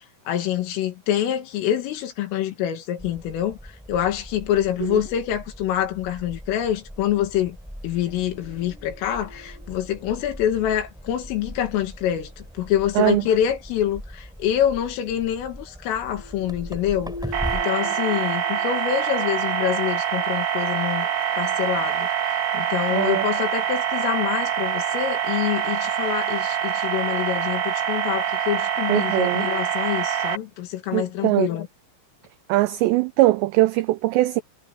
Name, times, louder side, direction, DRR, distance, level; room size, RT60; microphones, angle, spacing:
voice 1, 0.3-7.6 7.8-21.1 21.4-22.1 22.5-31.7, left 11 dB, 90° left, 4.8 m, -26 dB
sound 1, 3.0-17.6, equal, ahead, 4.6 m, -40 dB
sound 2, 7.9-14.0 15.1-27.6, left 2 dB, 60° left, 9.1 m, -47 dB
voice 2, 13.0-13.3 22.9-23.2 28.9-29.5 30.9-31.5 32.5-34.4, right 18 dB, 85° right, 2.5 m, -21 dB
sound 3, 17.3-30.4, right 10 dB, 60° right, 4.1 m, -25 dB
omnidirectional pair, 5.7 m